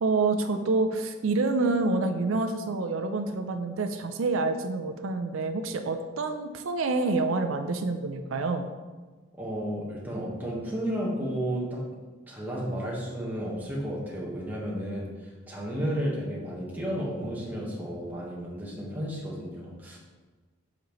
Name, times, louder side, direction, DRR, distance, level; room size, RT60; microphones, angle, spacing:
voice 1, 0.0-8.7, right 3 dB, 85° right, 6 dB, 0.5 m, -27 dB
voice 2, 9.3-11.8 12.3-20.0, equal, 10° right, -5 dB, 1.4 m, -32 dB
7.6 x 5.2 x 3.1 m, 1.3 s
head